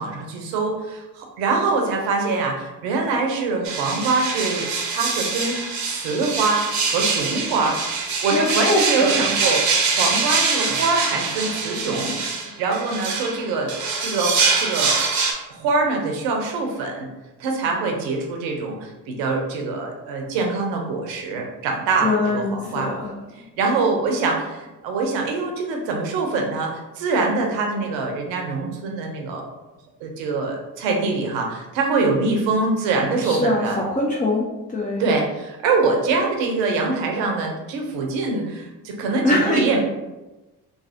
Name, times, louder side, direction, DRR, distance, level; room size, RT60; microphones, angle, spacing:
voice 1, 0.0-7.8 8.2-9.6 9.9-13.7 14.0-15.0 15.5-17.1 17.4-22.9 23.3-29.4 30.0-33.8 35.0-39.8, right 3 dB, 75° right, 1 dB, 0.7 m, -24 dB
sound 1, 3.6-15.3, right 4 dB, 40° right, 0.7 m, -24 dB
voice 2, 8.3-9.3 22.0-23.1 33.2-35.0 39.2-39.7, left 2 dB, 20° left, -3 dB, 0.6 m, -23 dB
3.1 x 2.3 x 2.7 m, 1.1 s
hypercardioid pair, 45°, 44 cm